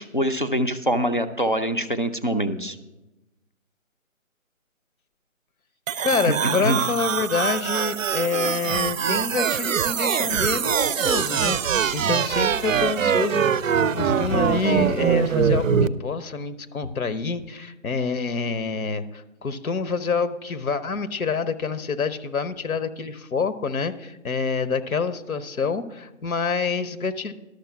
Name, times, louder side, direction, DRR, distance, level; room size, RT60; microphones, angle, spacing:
voice 1, 0.0-2.8 6.3-6.8, equal, 40° left, 9 dB, 0.4 m, -24 dB
sound 1, 5.9-15.9, right 8 dB, 70° right, 0.5 m, -23 dB
voice 2, 6.0-27.3, left 5 dB, 85° left, 11 dB, 0.9 m, -27 dB
12.0 x 6.5 x 5.8 m, 1.0 s
hypercardioid pair, 175°, 41 cm